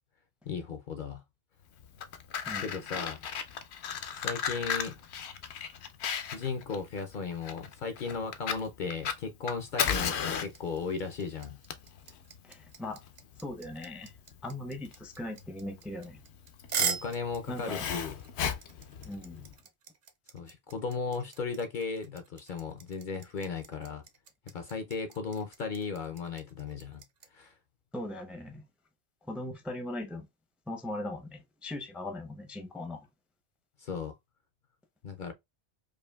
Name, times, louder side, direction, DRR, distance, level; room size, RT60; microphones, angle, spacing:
voice 1, 0.5-1.2 2.6-3.2 4.1-5.0 6.3-11.6 16.8-18.1 20.3-24.0 24.5-27.0 27.3-27.5 33.8-34.1 35.0-35.3, left 5 dB, 60° left, 0.6 m, -36 dB
Fire, 1.8-19.5, left 7 dB, 80° left, 0.9 m, -36 dB
sound 1, 10.5-27.3, right 6 dB, 50° right, 0.6 m, -39 dB
voice 2, 12.4-13.0 13.4-14.1 14.4-16.2 17.5-17.9 19.0-19.5 27.9-28.6 29.3-30.3 30.7-33.0, left 1 dB, ahead, 0.5 m, -39 dB
4.9 x 2.6 x 2.2 m
omnidirectional pair, 1.1 m